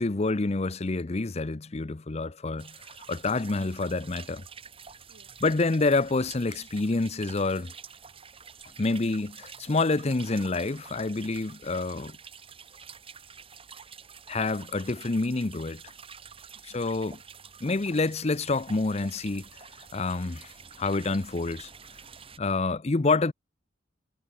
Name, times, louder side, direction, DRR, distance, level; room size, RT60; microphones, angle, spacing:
voice 1, 0.0-4.4 5.4-7.7 8.8-12.2 14.3-15.9 16.7-17.2 17.6-19.7 19.9-21.7 22.4-23.3, left 3 dB, 35° left, 0.6 m, -28 dB
sound 1, 2.6-22.4, right 6 dB, 30° right, 2.7 m, -48 dB
voice 2, 4.6-5.4 8.1-8.8 12.4-12.9 16.5-16.8, right 1 dB, 70° right, 3.7 m, -66 dB
head